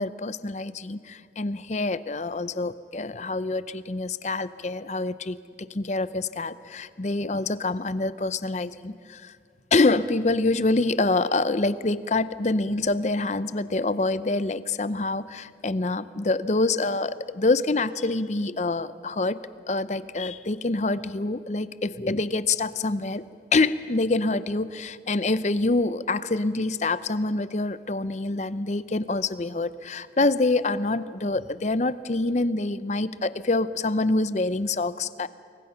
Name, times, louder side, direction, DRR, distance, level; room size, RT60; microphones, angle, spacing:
voice 1, 0.0-9.3 9.7-19.4 19.7-23.2 23.5-35.3, left 2 dB, 40° left, 15 dB, 0.6 m, -26 dB
29.0 x 22.5 x 5.8 m, 2.2 s
head